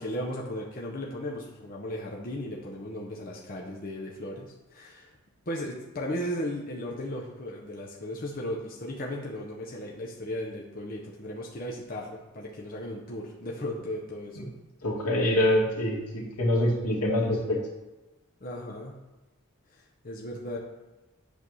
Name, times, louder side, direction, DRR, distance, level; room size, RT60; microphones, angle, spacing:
voice 1, 0.0-5.1 5.5-14.4 18.4-18.9 19.7-20.6, left 1 dB, 40° left, -3 dB, 0.9 m, -36 dB
voice 2, 14.8-17.6, left 1 dB, 85° left, -4 dB, 2.1 m, -25 dB
8.3 x 3.6 x 6.3 m, 1.1 s
head